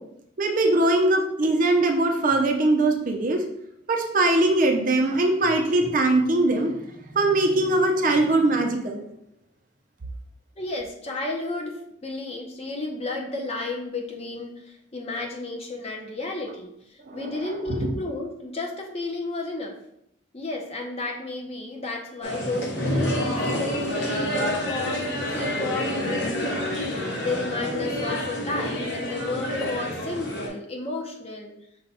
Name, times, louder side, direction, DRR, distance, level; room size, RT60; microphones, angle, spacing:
voice 1, 0.4-3.4 3.9-9.0 17.1-17.5 17.8-17.9, right 2 dB, 40° right, 2 dB, 0.5 m, -21 dB
voice 2, 7.7-8.2 10.6-11.7 12.0-14.6 14.9-16.7 17.1-19.7 20.3-31.5, left 2 dB, 30° left, 1 dB, 0.6 m, -32 dB
sound 1, 22.2-30.5, equal, 60° left, 1.1 m, -28 dB
5.4 x 2.2 x 4.1 m, 0.76 s
head